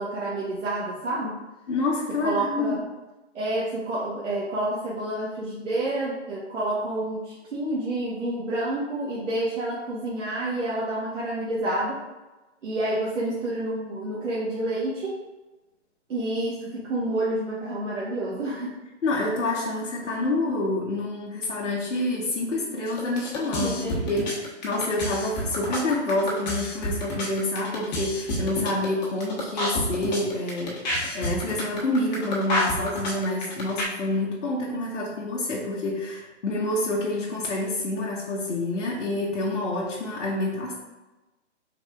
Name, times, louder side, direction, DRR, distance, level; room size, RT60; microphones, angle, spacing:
voice 1, 0.0-1.3 2.2-2.8 3.3-12.0 12.6-15.1 16.1-18.7 23.6-23.9, right 1 dB, 80° right, -6 dB, 1.0 m, -29 dB
voice 2, 1.7-2.8 19.0-40.8, left 2 dB, 85° left, -4 dB, 1.0 m, -27 dB
sound 1, 22.9-33.8, equal, 35° left, 1.1 m, -29 dB
4.5 x 3.9 x 2.3 m, 1.1 s
hypercardioid pair, 150°, 36 cm